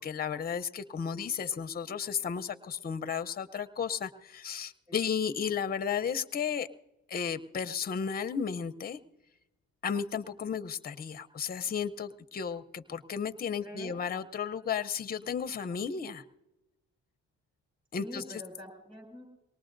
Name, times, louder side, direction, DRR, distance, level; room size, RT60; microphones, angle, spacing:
voice 1, 0.0-6.7 7.1-9.0 9.8-16.2 17.9-18.4, left 7 dB, 30° left, 11 dB, 0.7 m, -34 dB
voice 2, 13.6-14.0 18.0-19.3, left 1 dB, 15° right, 4 dB, 6.2 m, -45 dB
23.0 x 19.0 x 2.6 m, 0.99 s
cardioid pair, 90°, 30 cm